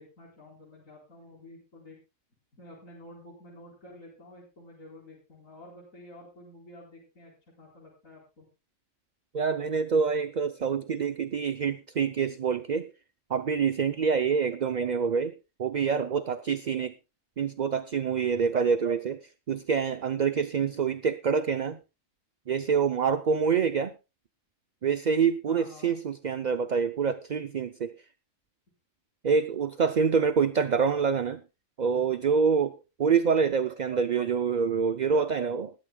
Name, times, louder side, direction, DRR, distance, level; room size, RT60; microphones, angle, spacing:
voice 1, 0.0-2.0 2.5-8.5 25.4-25.9, left 1 dB, 80° left, 4.9 m, -50 dB
voice 2, 9.3-12.9 13.3-15.3 15.6-16.9 17.4-19.2 19.5-21.8 22.5-23.9 24.8-27.9 29.2-31.4 31.8-32.7 33.0-35.7, right 6 dB, 45° right, 0.7 m, -26 dB
20.5 x 12.5 x 2.3 m
omnidirectional pair, 1.4 m